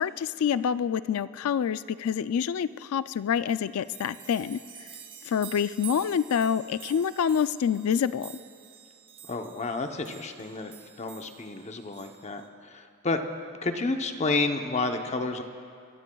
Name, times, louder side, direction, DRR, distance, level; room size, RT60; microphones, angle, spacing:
voice 1, 0.0-4.6 5.2-8.3, left 7 dB, 75° left, 15 dB, 0.3 m, -27 dB
sound 1, 3.1-3.2 3.5-12.5, right 8 dB, 25° right, 0.8 m, -47 dB
voice 2, 9.3-10.7 11.0-13.2 13.6-15.4, left 3 dB, 30° left, 5 dB, 0.8 m, -30 dB
24.5 x 14.5 x 2.3 m, 2.5 s
head